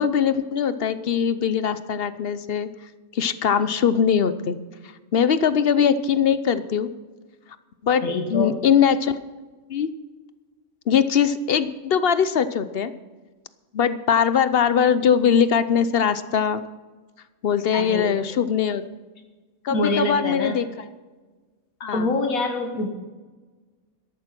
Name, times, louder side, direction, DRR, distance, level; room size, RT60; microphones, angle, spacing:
voice 1, 0.0-2.7 3.1-4.6 5.1-6.9 7.8-9.2 9.7-9.9 10.9-12.9 13.7-16.6 17.4-18.8 19.6-20.7 21.8-22.1, left 7 dB, 55° left, 13 dB, 0.8 m, -21 dB
voice 2, 8.0-8.6 17.7-18.1 19.7-20.6 21.8-22.9, left 3 dB, 85° left, 3 dB, 1.9 m, -25 dB
13.5 x 11.5 x 6.0 m, 1.3 s
omnidirectional pair, 1.4 m